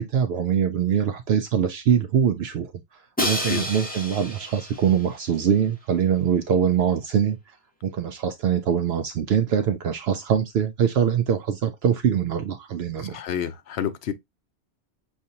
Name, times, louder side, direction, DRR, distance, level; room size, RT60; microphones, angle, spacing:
voice 1, 0.0-7.4 7.8-13.2, right 8 dB, 70° right, 0.8 m, -23 dB
voice 2, 3.2-3.6 13.1-14.1, left 9 dB, 70° left, 0.9 m, -29 dB
Crash cymbal, 3.2-5.2, equal, 10° left, 1.0 m, -30 dB
6.3 x 2.5 x 2.7 m
omnidirectional pair, 1.2 m